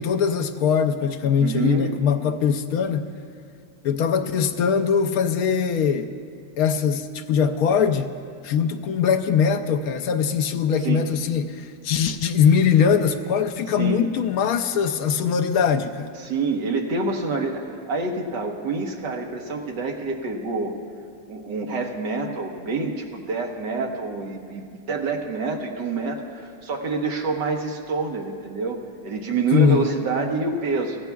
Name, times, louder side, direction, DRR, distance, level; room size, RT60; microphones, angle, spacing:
voice 1, 0.0-3.2 3.8-6.1 6.6-8.1 8.4-16.1 29.5-29.9, left 7 dB, 80° left, 7 dB, 0.8 m, -21 dB
voice 2, 1.4-1.9 10.8-11.1 13.8-14.0 16.2-20.7 21.3-31.0, right 4 dB, 65° right, 2 dB, 1.7 m, -27 dB
24.5 x 15.0 x 2.3 m, 2.4 s
omnidirectional pair, 2.2 m